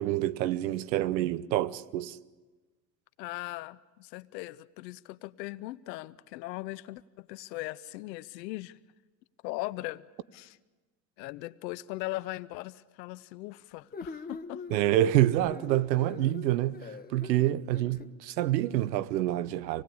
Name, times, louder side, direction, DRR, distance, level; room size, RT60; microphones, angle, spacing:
voice 1, 0.0-2.2 14.7-16.8 17.1-19.8, right 14 dB, 85° right, 1.0 m, -27 dB
voice 2, 3.2-8.8 9.4-10.1 10.3-10.6 11.2-14.8, left 18 dB, 85° left, 0.7 m, -39 dB
sound 1, 13.9-18.1, left 5 dB, 20° left, 1.4 m, -41 dB
26.5 x 18.5 x 8.5 m
hypercardioid pair, 85°, 49 cm